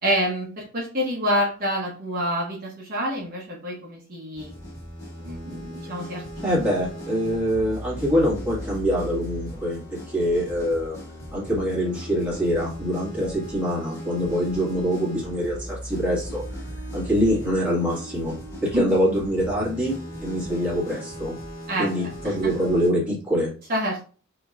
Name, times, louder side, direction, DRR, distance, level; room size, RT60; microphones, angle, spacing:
voice 1, 0.0-4.5 5.2-6.2 18.7-18.9 21.7-22.3 23.7-24.0, equal, 45° right, -3 dB, 1.1 m, -27 dB
sound 1, 4.3-22.9, equal, 15° left, 2.1 m, -37 dB
voice 2, 6.4-11.0 11.3-16.4 16.9-18.3 18.6-19.9 20.2-21.4 21.8-23.5, equal, 5° right, -7 dB, 2.0 m, -24 dB
5.1 x 3.1 x 2.5 m, 0.38 s
head